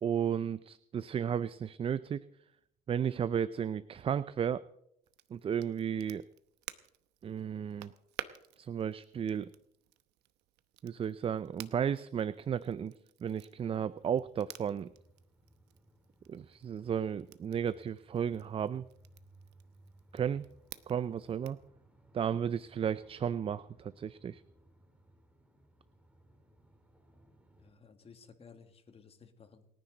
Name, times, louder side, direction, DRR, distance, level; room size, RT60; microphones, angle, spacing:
voice 1, 0.0-2.2 2.9-4.6 5.3-6.2 7.2-7.9 8.6-9.5 10.8-12.9 13.2-14.9 16.3-18.9 20.1-20.5 20.9-21.6 22.1-24.4, right 8 dB, 35° right, 16 dB, 0.4 m, -33 dB
Crackle, 5.0-21.7, right 14 dB, 85° right, 0.9 m, -53 dB
sound 1, 14.0-27.7, right 1 dB, 5° right, 3.4 m, -63 dB
voice 2, 27.6-29.7, left 5 dB, 35° left, 8 dB, 1.9 m, -56 dB
28.5 x 10.0 x 4.0 m, 0.78 s
cardioid pair, 110°, 17 cm